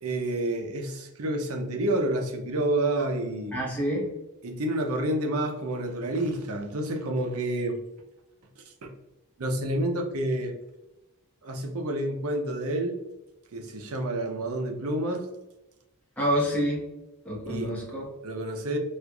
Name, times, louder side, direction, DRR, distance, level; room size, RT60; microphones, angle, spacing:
voice 1, 0.0-3.6 4.4-7.8 8.6-8.9 9.4-10.5 11.4-13.0 13.5-15.3 17.4-17.7 18.2-18.8, right 1 dB, 80° right, 3 dB, 0.6 m, -29 dB
voice 2, 3.5-4.1 16.2-16.8 17.2-18.0, equal, 5° left, -5 dB, 0.9 m, -27 dB
4.3 x 2.4 x 2.3 m, 0.97 s
head